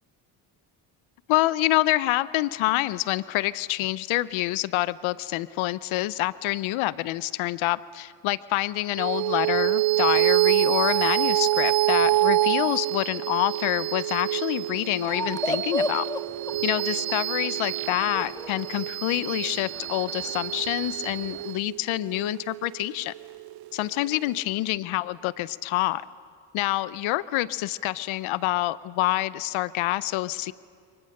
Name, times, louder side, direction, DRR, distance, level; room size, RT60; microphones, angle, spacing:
voice 1, 1.3-16.1 16.6-23.1 23.7-26.0 26.5-30.5, left 17 dB, 80° left, 19 dB, 0.8 m, -27 dB
sound 1, 9.0-23.7, right 17 dB, 50° right, 0.5 m, -26 dB
sound 2, 15.1-21.5, left 1 dB, 10° left, 1.7 m, -35 dB
28.5 x 24.0 x 6.6 m, 2.3 s
cardioid pair, 80°, 47 cm